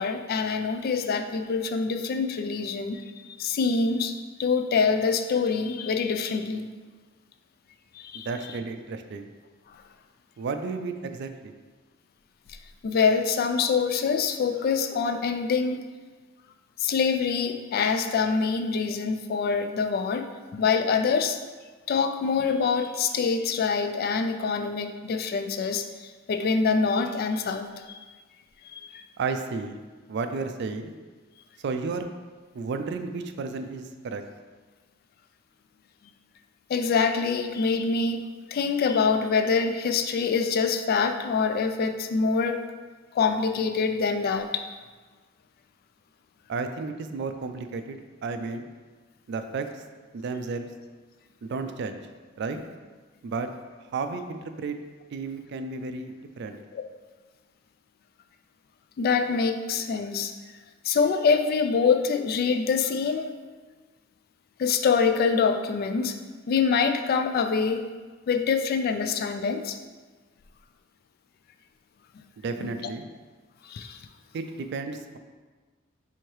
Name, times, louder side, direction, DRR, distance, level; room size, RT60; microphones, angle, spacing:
voice 1, 0.0-4.1 4.4-6.7 7.9-8.3 9.7-9.8 12.8-15.8 16.8-20.3 20.5-21.4 21.9-28.0 28.6-29.0 36.7-42.6 43.1-44.6 56.7-56.8 59.0-60.3 60.8-63.4 64.6-66.2 66.5-67.9 68.3-69.8 72.6-72.7 73.6-74.0, left 5 dB, 50° left, 8 dB, 0.3 m, -25 dB
voice 2, 8.1-9.2 10.4-11.5 29.2-29.8 30.1-30.9 31.6-32.1 32.5-34.2 46.5-48.7 49.3-49.8 50.1-50.7 51.4-52.0 52.4-52.6 53.2-53.5 53.9-54.8 55.1-56.6 72.4-73.1 74.3-75.2, right 4 dB, 60° right, 8 dB, 0.3 m, -32 dB
4.6 x 3.5 x 3.1 m, 1.4 s
head